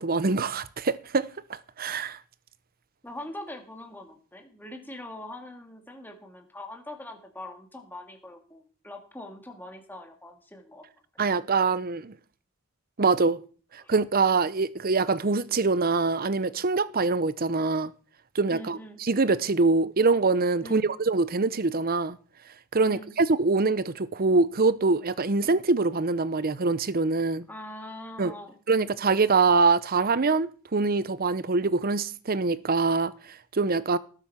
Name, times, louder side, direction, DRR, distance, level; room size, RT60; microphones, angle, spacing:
voice 1, 0.0-2.2 11.2-12.1 13.0-13.4 13.7-17.9 18.3-22.2 22.7-27.5 28.2-28.3 28.7-34.0, right 3 dB, 40° right, 0.7 m, -24 dB
voice 2, 3.0-10.8 13.8-13.9 18.5-19.0 20.6-20.9 22.8-23.1 27.5-28.6, left 1 dB, 10° left, 2.4 m, -42 dB
18.5 x 8.2 x 5.8 m
head